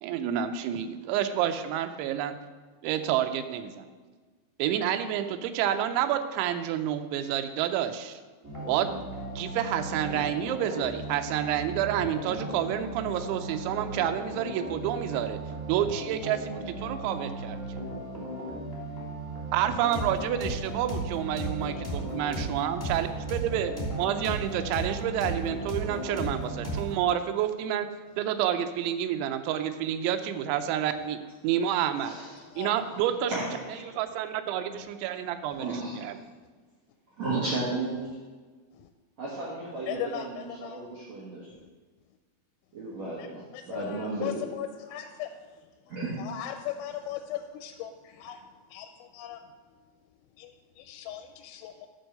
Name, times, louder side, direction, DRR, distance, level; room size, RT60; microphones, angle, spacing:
voice 1, 0.0-2.3 2.8-3.8 4.6-8.2 8.7-8.9 9.4-15.4 15.7-17.8 19.5-27.9 28.2-32.2 32.6-33.3 33.9-36.2, right 10 dB, 85° right, 9 dB, 3.0 m, -29 dB
sound 1, 8.4-26.9, right 1 dB, 15° right, 0.7 m, -35 dB
voice 2, 21.8-22.2 32.5-32.7 34.8-34.9 38.7-38.9 39.9-40.8 43.2-43.3 43.5-45.3 46.2-49.5 50.4-51.9, left 10 dB, 90° left, 7 dB, 2.9 m, -38 dB
voice 3, 32.0-33.9 35.6-36.2 37.2-38.0 39.2-41.5 42.7-44.4 45.9-46.2, right 2 dB, 65° right, -5 dB, 1.8 m, -34 dB
11.0 x 4.7 x 6.6 m, 1.4 s
omnidirectional pair, 5.2 m